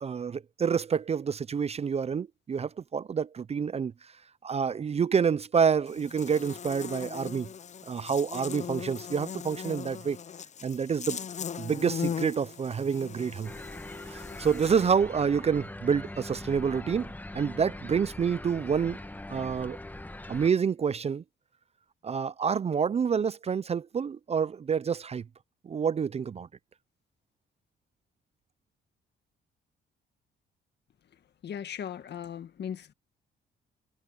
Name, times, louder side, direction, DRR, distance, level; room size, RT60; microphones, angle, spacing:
voice 1, 0.0-3.9 4.4-7.5 7.9-10.2 10.6-11.2 11.6-13.5 14.1-19.0 19.3-19.8 20.3-21.2 22.0-25.2 25.6-26.5, right 6 dB, 30° right, 0.4 m, -28 dB
Buzz, 5.9-14.9, left 7 dB, 35° left, 0.6 m, -39 dB
sound 1, 13.4-20.5, left 1 dB, 10° left, 1.2 m, -42 dB
voice 2, 31.4-32.9, left 8 dB, 60° left, 1.7 m, -38 dB
cardioid pair, 90°, 20 cm